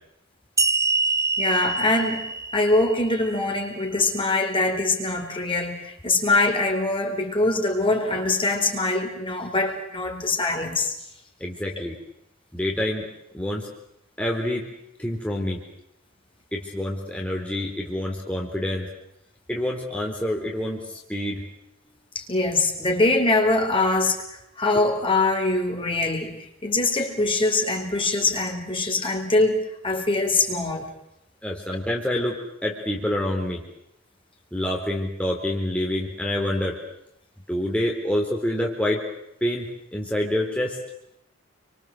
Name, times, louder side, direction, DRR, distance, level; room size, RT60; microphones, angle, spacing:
sound 1, 0.6-3.9, right 3 dB, 15° right, 2.0 m, -26 dB
voice 1, 1.4-10.9 22.1-24.2 24.6-30.9, left 2 dB, 25° left, 3 dB, 4.6 m, -23 dB
voice 2, 11.4-12.0 12.5-13.1 13.3-13.7 14.2-14.6 15.0-15.6 16.5-18.9 19.5-21.4 31.4-33.7 34.5-36.8 37.5-39.0 39.4-40.8, left 1 dB, 5° left, -1 dB, 4.0 m, -27 dB
29.5 x 25.0 x 7.9 m, 0.79 s
head